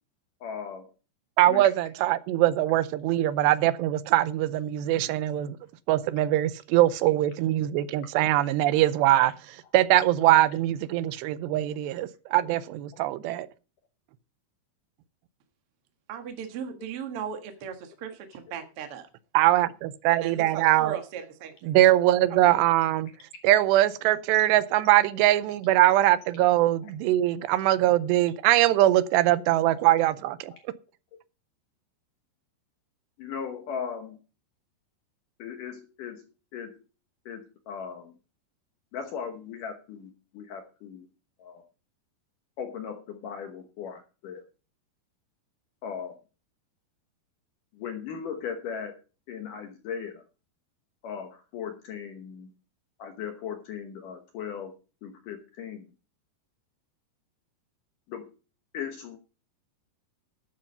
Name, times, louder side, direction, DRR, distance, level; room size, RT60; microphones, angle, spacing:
voice 1, 0.4-0.9 1.5-1.7 30.5-30.6 33.2-34.2 35.4-36.3 36.5-36.8 37.3-38.1 38.9-41.1 41.4-41.6 42.6-44.4 45.8-46.2 47.8-48.9 49.3-50.2 51.0-52.5 53.0-54.7 55.0-55.8 58.1-58.3 58.7-59.2, left 7 dB, 70° left, 2.1 m, -37 dB
voice 2, 1.4-5.6 5.9-9.3 9.7-13.5 19.3-21.0 21.6-23.1 23.4-30.5, right 14 dB, 80° right, 2.7 m, -22 dB
voice 3, 16.1-19.1 20.1-21.7 22.3-22.5, right 7 dB, 60° right, 1.5 m, -37 dB
12.5 x 7.8 x 5.4 m
omnidirectional pair, 5.0 m